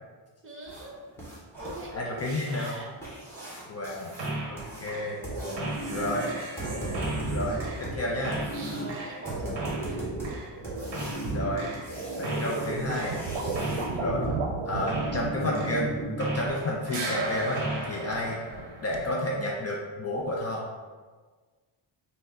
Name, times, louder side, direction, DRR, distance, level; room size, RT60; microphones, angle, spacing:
voice 1, 0.4-1.0 1.5-3.0 7.9-10.0 18.0-18.3, right 2 dB, 30° right, -3 dB, 0.7 m, -42 dB
sound 1, 0.7-13.9 16.2-16.3 16.7-16.8 17.3-17.4 17.9-18.0 18.4-18.6 19.0-19.1 19.5-19.6, right 1 dB, 5° left, 1.0 m, -40 dB
voice 2, 1.9-2.7 3.7-4.1 4.5-5.3 5.9-6.3 7.3-8.3 11.2-11.7 12.2-13.2 13.9-14.4 14.7-18.4 18.8-20.6, left 1 dB, 35° left, -2 dB, 0.4 m, -31 dB
sound 2, 4.2-4.6 4.9-16.6 16.9-19.1, right 2 dB, 65° right, 1.2 m, -33 dB
sound 3, 12.9-15.3 15.8-16.1 16.5-16.7 18.1-18.7 18.9-19.1, right 4 dB, 90° right, 0.7 m, -34 dB
5.4 x 2.1 x 3.6 m, 1.4 s
wide cardioid pair, 165°, 46 cm